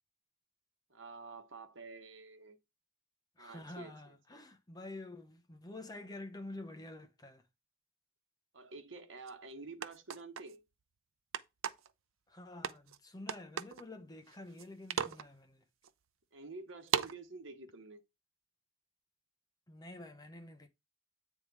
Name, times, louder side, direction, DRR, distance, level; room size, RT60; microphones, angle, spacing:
voice 1, 0.9-2.6 3.4-4.4 8.5-10.6 16.3-18.0, right 3 dB, 65° right, 1.2 m, -49 dB
voice 2, 3.4-7.4 12.3-15.6 19.7-20.7, left 2 dB, 20° left, 0.8 m, -48 dB
sound 1, 9.3-9.4 9.8-10.5 11.3-11.9 12.6-13.0 13.3-13.8 14.3-14.7 14.9-15.3 15.8-15.9 16.9-17.2, right 7 dB, 90° right, 0.6 m, -36 dB
8.6 x 3.6 x 4.7 m
head